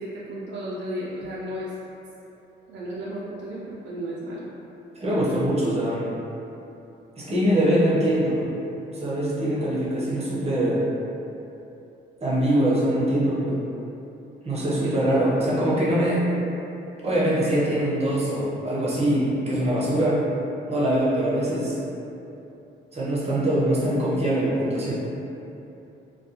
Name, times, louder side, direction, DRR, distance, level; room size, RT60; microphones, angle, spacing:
voice 1, 0.0-1.7 2.7-4.5 14.8-15.1, equal, 65° right, -7 dB, 0.4 m, -34 dB
voice 2, 5.0-6.1 7.2-8.5 8.9-10.8 12.2-13.6 14.4-16.2 17.0-20.2 20.7-21.8 22.9-24.9, right 1 dB, 30° right, -7 dB, 0.7 m, -23 dB
2.2 x 2.2 x 2.8 m, 2.9 s
cardioid pair, 90°, 20 cm